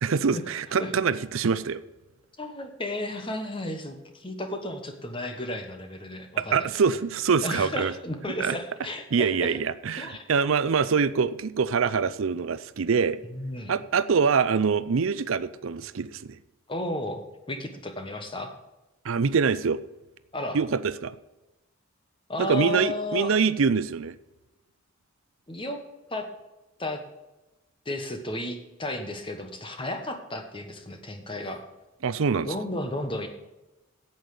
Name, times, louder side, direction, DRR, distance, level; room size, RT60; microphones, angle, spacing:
voice 1, 0.0-1.8 6.4-7.9 8.4-8.6 9.1-13.2 13.7-16.4 19.0-19.8 20.5-21.2 22.4-24.1 32.0-32.5, right 5 dB, 70° right, 15 dB, 0.5 m, -24 dB
voice 2, 2.4-6.8 7.4-9.5 10.0-10.2 13.2-13.7 16.7-17.2 17.5-18.5 20.3-20.6 22.3-23.3 25.5-25.8 26.1-26.2 26.8-27.0 27.8-31.6 32.4-33.3, left 1 dB, 25° left, 6 dB, 1.3 m, -33 dB
8.9 x 8.1 x 6.8 m, 1.0 s
head